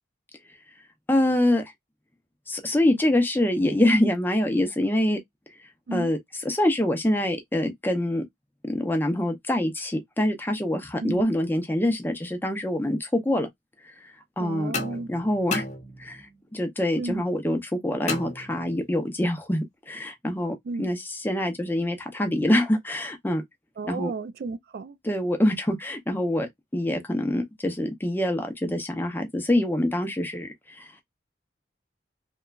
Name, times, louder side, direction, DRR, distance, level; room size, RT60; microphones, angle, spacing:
voice 1, 1.1-1.6 2.5-5.2 5.9-8.2 8.6-13.5 14.0-14.7 15.1-15.6 16.0-23.4 23.9-24.1 25.0-30.9, left 1 dB, 10° left, 0.5 m, -25 dB
voice 2, 14.4-15.1 17.0-17.2 20.6-20.9 23.8-25.0, right 3 dB, 60° right, 0.3 m, -33 dB
sound 1, 14.7-16.4 18.1-19.0, left 3 dB, 40° left, 0.7 m, -34 dB
3.0 x 2.2 x 2.3 m
head